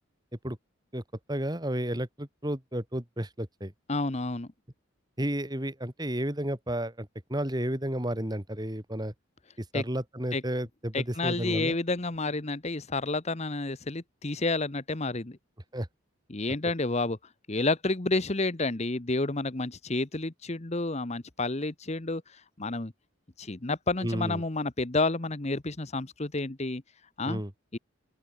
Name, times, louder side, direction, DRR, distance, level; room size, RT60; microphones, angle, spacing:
voice 1, 1.3-3.7 5.2-9.1 9.6-11.8 15.7-15.9 24.0-24.4 27.3-27.5, right 1 dB, 20° right, 2.3 m, -32 dB
voice 2, 3.9-4.5 9.7-9.8 10.3-10.4 10.9-15.4 16.3-17.2 17.5-22.9 23.4-26.8 27.2-27.4 27.7-27.8, left 2 dB, 30° left, 1.1 m, -30 dB
open air
head